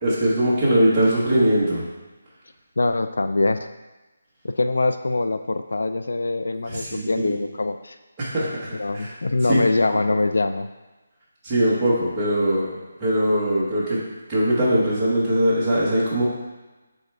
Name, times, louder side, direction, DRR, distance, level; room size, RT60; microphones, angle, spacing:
voice 1, 0.0-1.8 6.7-7.3 8.2-9.1 9.5-9.6 9.9-10.1 11.4-14.0 14.3-16.2, equal, 10° right, -10 dB, 1.1 m, -21 dB
voice 2, 2.8-3.7 4.4-8.0 8.7-10.7, left 2 dB, 85° left, 9 dB, 0.4 m, -23 dB
7.9 x 3.6 x 3.3 m, 1.2 s
hypercardioid pair, 180°, 0 cm